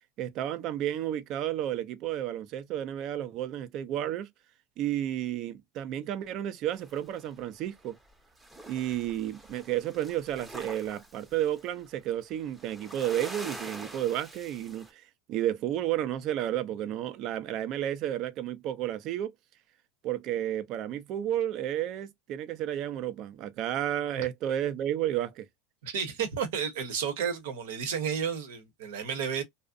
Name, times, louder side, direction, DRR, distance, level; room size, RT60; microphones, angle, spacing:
voice 1, 0.2-4.3 4.8-8.0 8.7-19.3 20.0-25.5, right 11 dB, 50° right, 0.4 m, -32 dB
sound 1, 6.7-8.1 8.4-14.9, right 1 dB, 10° right, 0.6 m, -46 dB
voice 2, 25.8-29.4, right 7 dB, 80° right, 0.8 m, -32 dB
2.6 x 2.0 x 2.4 m
supercardioid pair, 115°, 0 cm